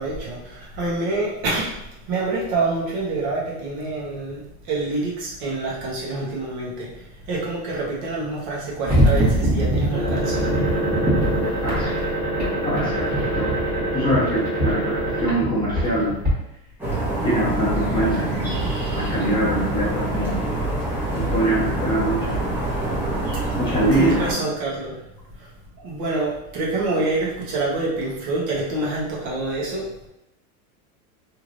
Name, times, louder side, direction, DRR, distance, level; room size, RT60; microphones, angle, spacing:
voice 1, 0.0-1.7 2.1-10.6 24.0-25.0 25.4-25.5 25.8-29.8, right 2 dB, 50° right, -4 dB, 1.1 m, -26 dB
sound 1, 8.9-16.3, right 1 dB, 20° right, 1.4 m, -22 dB
voice 2, 11.6-11.9 12.6-13.6 13.9-16.2 17.2-18.5 18.9-20.4 21.1-22.4 23.6-24.4, right 1 dB, 10° left, -9 dB, 0.9 m, -24 dB
sound 2, 16.8-24.3, right 1 dB, 5° right, 0.5 m, -25 dB
3.1 x 2.8 x 2.5 m, 0.85 s
supercardioid pair, 145°, 44 cm